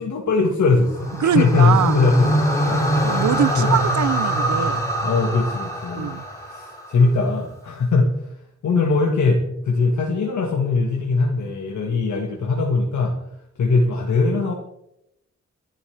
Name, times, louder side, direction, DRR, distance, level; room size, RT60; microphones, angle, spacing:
voice 1, 0.0-2.8 3.6-3.7 5.0-6.1 6.5-8.1 8.6-13.1 13.6-14.5, left 3 dB, 80° left, 1.8 m, -20 dB
sound 1, 0.8-7.1, equal, 10° left, 5.6 m, -23 dB
voice 2, 1.2-2.0 2.2-2.3 3.0-4.8 6.0-6.2, right 10 dB, 75° right, 0.6 m, -22 dB
26.5 x 11.0 x 3.5 m
wide cardioid pair, 155°, 29 cm